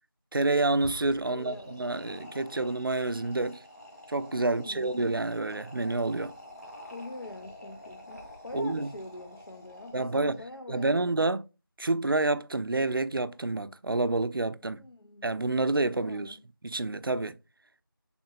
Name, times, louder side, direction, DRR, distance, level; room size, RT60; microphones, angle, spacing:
voice 1, 0.3-3.6 4.1-6.3 8.5-8.9 9.9-10.4 10.7-11.4 11.8-14.8 15.2-16.4 16.6-17.4, right 2 dB, 70° right, 0.4 m, -28 dB
sound 1, 0.7-10.4, left 1 dB, 40° left, 1.1 m, -48 dB
voice 2, 1.3-2.6 4.4-5.0 6.9-11.1 14.7-15.3 16.0-16.4, left 2 dB, 85° left, 0.6 m, -45 dB
3.6 x 2.9 x 2.3 m
figure-of-eight pair, 180°, 12 cm